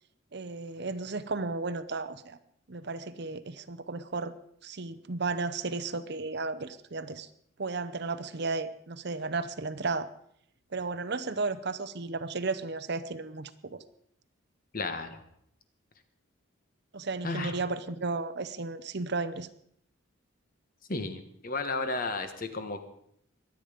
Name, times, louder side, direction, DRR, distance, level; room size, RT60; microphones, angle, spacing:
voice 1, 0.3-2.4 2.7-4.3 4.6-7.3 7.6-10.1 10.7-13.8 16.9-19.5, right 3 dB, 55° right, 11 dB, 0.8 m, -34 dB
voice 2, 14.7-15.2 17.2-17.5 20.9-22.8, left 3 dB, 45° left, 8 dB, 1.4 m, -33 dB
23.0 x 9.2 x 5.1 m, 0.69 s
head